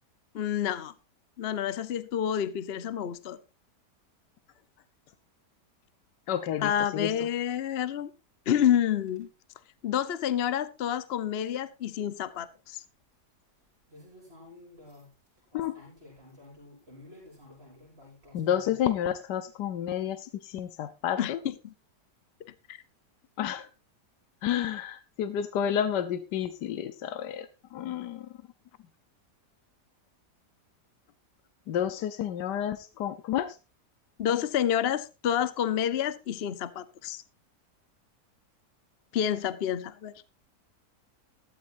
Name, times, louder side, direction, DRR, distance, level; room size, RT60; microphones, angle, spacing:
voice 1, 0.3-0.9 1.4-3.4 6.6-8.1 8.5-9.3 9.8-12.8 21.2-21.7 22.4-22.8 34.2-37.2 39.1-40.1, left 10 dB, 50° left, 15 dB, 0.8 m, -29 dB
voice 2, 6.3-7.1 15.5-15.7 18.3-21.4 23.4-23.7 24.4-27.5 27.7-28.3 31.7-33.5, left 10 dB, 80° left, 12 dB, 1.4 m, -30 dB
sound 1, 9.1-9.3 13.9-18.9, left 2 dB, 35° right, 7.7 m, -52 dB
16.0 x 13.0 x 2.6 m, 0.27 s
omnidirectional pair, 1.8 m